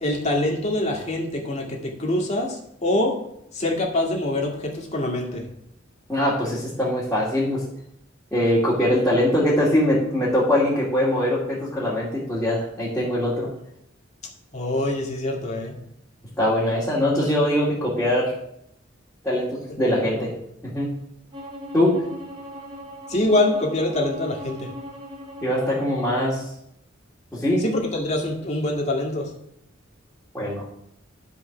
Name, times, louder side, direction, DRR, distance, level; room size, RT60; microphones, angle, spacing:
voice 1, 0.0-3.1 3.5-5.4 14.5-15.8 19.8-20.3 23.1-24.7 27.6-29.3, left 1 dB, 35° left, -1 dB, 2.2 m, -25 dB
voice 2, 6.1-7.6 8.3-13.5 16.4-18.3 19.2-20.3 20.6-20.9 21.7-22.0 25.4-26.4 27.3-27.6 30.3-30.7, left 1 dB, 5° left, -9 dB, 2.5 m, -22 dB
Bowed string instrument, 21.3-26.4, left 1 dB, 25° right, 3.3 m, -38 dB
12.5 x 5.2 x 5.9 m, 0.76 s
head